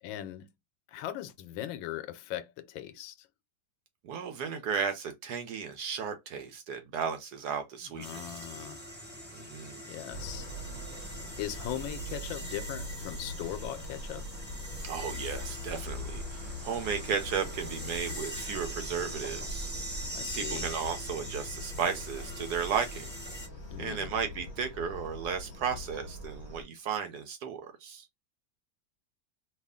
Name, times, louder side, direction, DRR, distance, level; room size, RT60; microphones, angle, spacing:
voice 1, 0.0-0.5 0.9-3.3 7.9-8.9 9.8-10.5 11.4-14.3 20.1-20.7 23.7-24.1, left 12 dB, 90° left, 1.3 m, -39 dB
voice 2, 4.0-8.2 9.3-9.8 14.8-19.7 20.3-23.1 23.8-28.1, right 6 dB, 70° right, 1.1 m, -34 dB
sound 1, 8.0-23.5, right 1 dB, 15° right, 0.3 m, -43 dB
sound 2, 10.1-26.6, left 1 dB, 15° left, 1.1 m, -42 dB
3.3 x 2.4 x 3.5 m
omnidirectional pair, 2.1 m